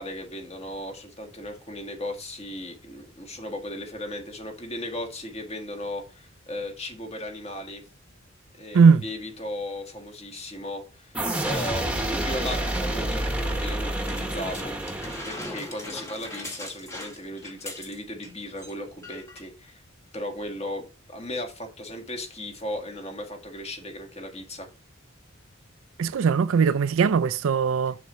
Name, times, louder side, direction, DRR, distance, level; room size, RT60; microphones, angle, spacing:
voice 1, 0.0-7.8 8.6-14.7 15.2-19.8 20.1-24.7, left 1 dB, 30° left, 1.6 m, -36 dB
sound 1, 11.1-15.8, right 1 dB, 5° right, 1.1 m, -29 dB
sound 2, 14.1-18.3 18.6-18.7 19.0-19.5 20.2-20.3, left 1 dB, 15° left, 1.2 m, -40 dB
voice 2, 26.0-28.0, right 5 dB, 80° right, 0.4 m, -19 dB
6.9 x 6.7 x 3.0 m
head